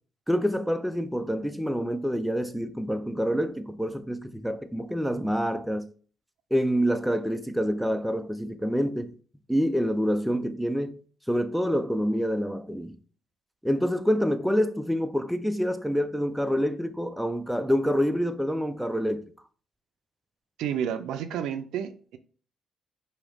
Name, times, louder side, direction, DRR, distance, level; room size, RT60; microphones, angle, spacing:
voice 1, 0.3-5.9 6.5-9.1 9.5-11.0 11.3-13.0 13.6-19.2, equal, ahead, 0.4 m, -27 dB
voice 2, 20.6-22.2, right 9 dB, 85° right, 0.4 m, -31 dB
4.9 x 2.7 x 3.4 m
cardioid pair, 90°, 0 cm